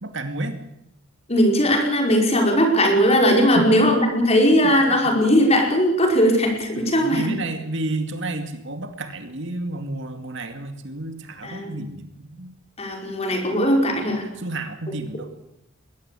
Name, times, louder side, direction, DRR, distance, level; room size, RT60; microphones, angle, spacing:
voice 1, 0.0-0.6 3.5-3.8 4.6-4.7 6.8-12.5 14.1-15.3, right 2 dB, 60° right, 7 dB, 2.4 m, -31 dB
voice 2, 1.3-7.3 11.4-11.8 12.8-14.3, equal, 30° left, 2 dB, 5.3 m, -19 dB
22.0 x 17.5 x 8.5 m, 0.81 s
head